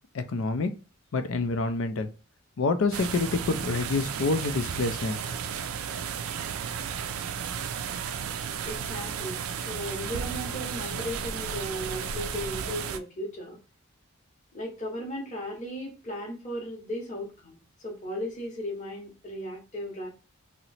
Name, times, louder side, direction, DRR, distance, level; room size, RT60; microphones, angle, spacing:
voice 1, 0.1-0.7 1.1-2.1 2.6-5.2, left 3 dB, 65° left, 9 dB, 0.4 m, -27 dB
sound 1, 2.9-13.0, right 7 dB, 75° right, 0.4 m, -33 dB
voice 2, 8.6-13.6 14.5-17.6 17.8-20.1, equal, 35° left, -2 dB, 0.8 m, -36 dB
2.9 x 2.1 x 4.0 m, 0.33 s
head